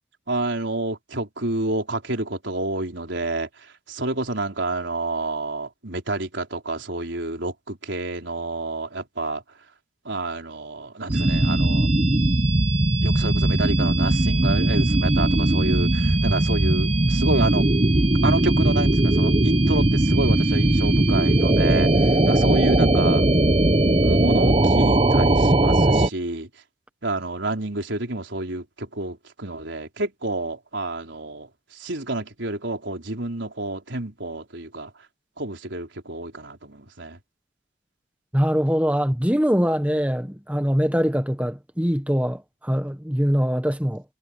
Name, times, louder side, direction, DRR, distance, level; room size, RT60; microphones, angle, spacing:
voice 1, 0.3-3.5 3.9-9.4 10.0-11.9 13.0-17.7 18.2-23.2 24.0-26.5 27.0-34.9 35.4-37.2, right 2 dB, 75° right, 4.1 m, -29 dB
sound 1, 11.1-26.1, right 1 dB, 30° right, 0.9 m, -19 dB
voice 2, 38.3-44.0, equal, 5° right, 1.4 m, -23 dB
head